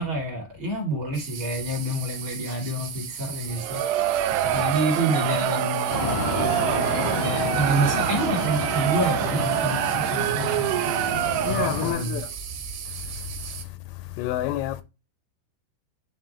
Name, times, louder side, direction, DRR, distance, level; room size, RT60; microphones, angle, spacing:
voice 1, 0.0-3.8 4.2-10.7 11.5-12.2, right 1 dB, 35° right, 2.6 m, -28 dB
sound 1, 1.1-13.6, right 7 dB, 65° right, 3.0 m, -37 dB
Crowd, 3.5-12.0, right 12 dB, 80° right, 2.6 m, -26 dB
sound 2, 5.9-11.9, left 2 dB, 20° left, 0.9 m, -30 dB
voice 2, 11.4-12.3 14.2-14.8, left 14 dB, 80° left, 2.7 m, -28 dB
11.0 x 3.6 x 3.3 m
omnidirectional pair, 5.1 m